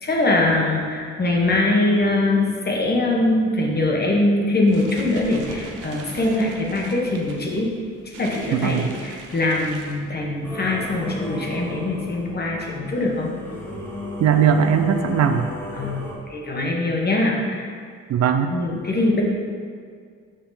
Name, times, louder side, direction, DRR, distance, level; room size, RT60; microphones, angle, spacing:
voice 1, 0.0-7.8 8.0-13.3 15.7-16.0 16.3-17.7 18.5-19.2, left 2 dB, 35° left, -1 dB, 1.4 m, -22 dB
sound 1, 4.5-10.4, right 3 dB, 90° right, 0.9 m, -41 dB
voice 2, 8.5-8.9 14.2-15.5 18.1-18.5, right 7 dB, 60° right, 8 dB, 0.5 m, -19 dB
Singing / Musical instrument, 10.4-16.1, left 1 dB, 5° left, 1.5 m, -34 dB
6.5 x 5.6 x 4.1 m, 2.1 s
cardioid pair, 90°, 30 cm